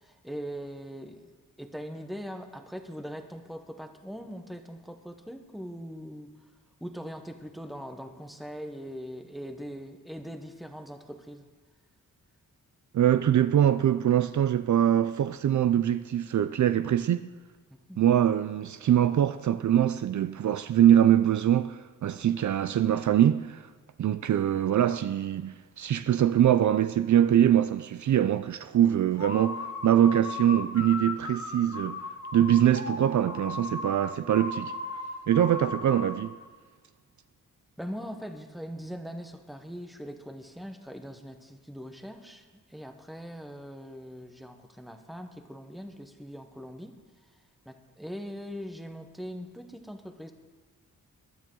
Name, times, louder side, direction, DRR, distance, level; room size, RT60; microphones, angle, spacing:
voice 1, 0.0-1.3 1.6-6.4 6.8-11.5 17.7-18.0 37.8-47.0 47.6-50.3, equal, ahead, 1.0 m, -41 dB
voice 2, 12.9-17.3 18.0-23.7 24.0-32.0 32.3-34.7 35.3-36.4, right 10 dB, 60° right, 0.5 m, -23 dB
sound 1, 29.1-36.3, left 3 dB, 45° left, 1.4 m, -37 dB
21.5 x 12.0 x 3.8 m
wide cardioid pair, 120°, 33 cm